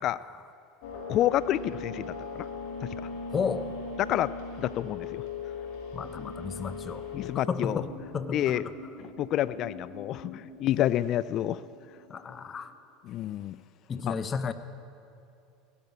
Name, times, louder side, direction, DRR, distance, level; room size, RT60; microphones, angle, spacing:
voice 1, 0.0-0.4 3.3-3.7 5.9-7.1 7.5-8.7 12.1-12.7 13.9-14.5, left 6 dB, 35° left, 12 dB, 0.8 m, -33 dB
sound 1, 0.8-7.3, left 4 dB, 70° left, 2.6 m, -38 dB
voice 2, 1.1-2.1 2.3-2.5 4.1-4.3 4.6-5.2 6.2-6.3 7.1-7.8 8.3-8.6 9.2-11.6 13.1-13.6 14.1-14.2, left 12 dB, 50° left, 17 dB, 0.3 m, -28 dB
sound 2, 7.6-12.6, left 1 dB, 85° left, 2.7 m, -46 dB
16.5 x 8.2 x 8.5 m, 2.7 s
hypercardioid pair, 85°, 0 cm